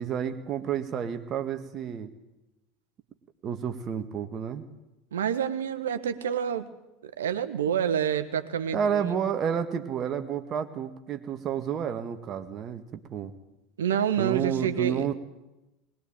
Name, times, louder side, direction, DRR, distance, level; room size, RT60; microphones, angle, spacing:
voice 1, 0.0-2.1 3.4-4.7 8.7-13.3 14.2-15.1, right 8 dB, 40° right, 6 dB, 1.8 m, -30 dB
voice 2, 5.1-6.7 7.0-9.2 13.8-15.1, right 8 dB, 80° right, 11 dB, 1.4 m, -28 dB
21.0 x 20.5 x 9.0 m, 0.98 s
hypercardioid pair, 75°, 0 cm